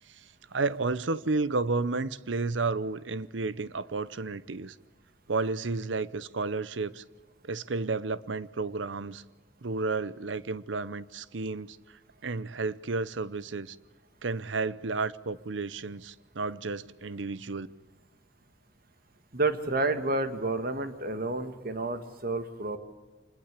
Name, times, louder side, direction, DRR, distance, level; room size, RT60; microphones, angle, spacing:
voice 1, 0.1-4.8 5.3-7.0 7.4-9.2 9.6-13.8 14.2-17.7, right 3 dB, 80° right, 0.8 m, -32 dB
voice 2, 19.3-22.8, right 2 dB, 55° right, 1.8 m, -30 dB
26.5 x 20.5 x 8.3 m
head